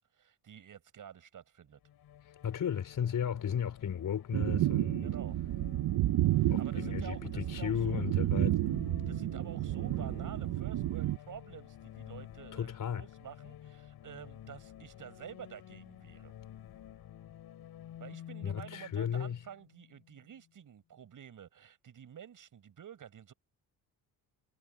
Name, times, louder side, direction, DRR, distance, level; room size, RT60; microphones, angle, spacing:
voice 1, 0.0-1.8 5.0-5.4 6.4-8.0 9.1-16.3 18.0-23.3, right 9 dB, 55° right, 7.7 m, -50 dB
sound 1, 1.8-20.4, left 11 dB, 70° left, 5.1 m, -51 dB
voice 2, 2.4-5.1 6.5-8.6 12.5-13.1 18.4-19.4, left 8 dB, 55° left, 4.6 m, -34 dB
sound 2, 4.3-11.2, right 15 dB, 75° right, 1.0 m, -31 dB
cardioid pair, 110°, 38 cm